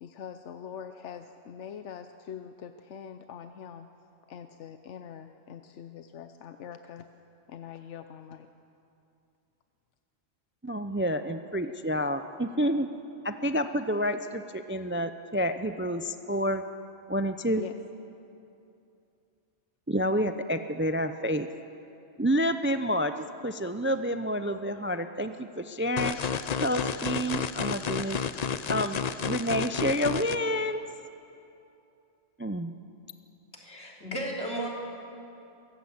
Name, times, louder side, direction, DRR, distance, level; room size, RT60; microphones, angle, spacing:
voice 1, 0.0-3.9 4.3-7.1 7.5-8.5 17.6-17.8, left 8 dB, 90° left, 8 dB, 1.0 m, -43 dB
voice 2, 10.6-12.9 13.2-16.6 17.1-17.7 19.9-21.5 22.2-26.2 26.6-28.2 28.7-30.8 32.4-32.7, equal, 15° right, 9 dB, 0.4 m, -29 dB
sound 1, 26.0-30.4, left 6 dB, 45° left, 0.6 m, -31 dB
voice 3, 33.5-34.7, right 1 dB, 70° left, -2 dB, 3.5 m, -34 dB
23.0 x 15.5 x 8.0 m, 2.7 s
omnidirectional pair, 1.2 m